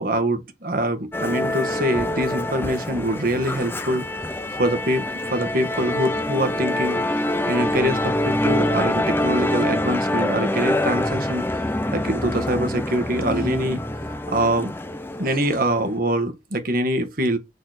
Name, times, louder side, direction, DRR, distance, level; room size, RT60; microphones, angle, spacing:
voice 1, 0.0-4.0 4.6-7.0 7.4-11.6 11.9-13.8 14.1-14.7 15.2-17.4, right 1 dB, 50° right, 1.5 m, -24 dB
Musical instrument, 1.1-15.8, left 1 dB, 10° left, 0.6 m, -25 dB
6.5 x 4.2 x 6.5 m
head